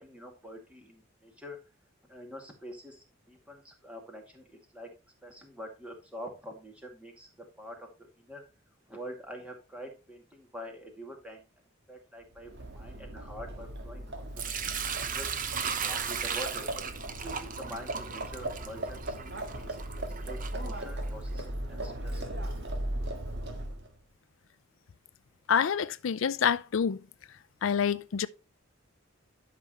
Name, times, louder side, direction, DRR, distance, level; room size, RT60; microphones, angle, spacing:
voice 1, 0.0-1.6 2.1-4.5 4.7-4.9 5.2-7.3 7.6-8.4 8.9-11.4 11.9-14.3 15.0-15.4 15.8-16.7 17.1-19.8 20.2-22.5, equal, 5° right, 2.3 m, -45 dB
Livestock farm animals working animals, 12.3-24.0, right 1 dB, 55° right, 1.9 m, -38 dB
Sink (filling or washing) / Liquid, 14.4-21.3, right 7 dB, 40° right, 0.9 m, -36 dB
voice 2, 25.5-27.0 27.6-28.3, left 7 dB, 70° left, 0.4 m, -27 dB
11.5 x 6.0 x 3.1 m
head